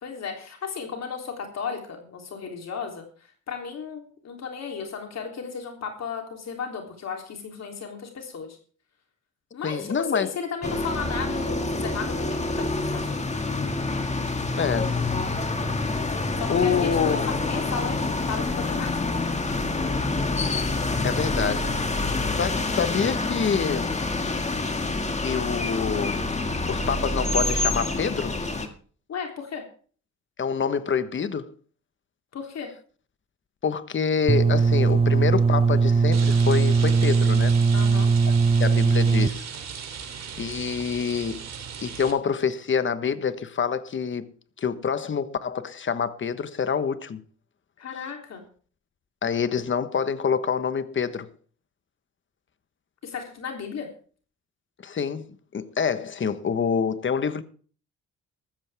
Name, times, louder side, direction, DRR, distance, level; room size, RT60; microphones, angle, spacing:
voice 1, 0.0-3.1 3.5-8.6 9.5-13.1 16.4-19.3 29.1-29.6 32.3-32.7 37.7-38.1 47.8-48.4 53.0-53.9, left 6 dB, 60° left, 3.4 m, -34 dB
voice 2, 9.6-10.3 14.6-15.0 16.5-17.2 21.0-21.7 22.4-23.9 25.2-26.2 26.7-28.4 30.4-31.5 33.6-37.5 38.3-38.4 38.6-39.5 40.4-41.4 41.8-44.3 44.6-47.2 49.2-51.3 54.8-57.4, left 6 dB, 40° left, 1.3 m, -26 dB
sound 1, 10.6-28.7, left 2 dB, 20° left, 2.1 m, -27 dB
sound 2, 34.3-39.3, right 4 dB, 20° right, 0.7 m, -19 dB
Rain, 36.1-42.1, right 7 dB, 60° right, 3.0 m, -37 dB
14.5 x 14.0 x 3.6 m
cardioid pair, 90°, 30 cm